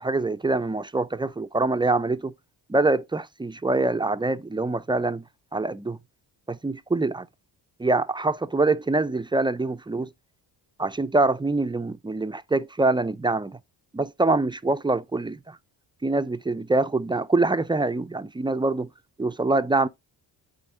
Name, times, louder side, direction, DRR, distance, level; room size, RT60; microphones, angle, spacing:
voice 1, 0.0-2.3 2.7-5.2 5.5-6.0 6.5-7.3 7.8-10.1 10.8-13.6 13.9-15.6 16.0-18.9 19.2-19.9, right 2 dB, 10° right, 0.3 m, -24 dB
8.6 x 4.0 x 3.8 m
cardioid pair, 65°, 46 cm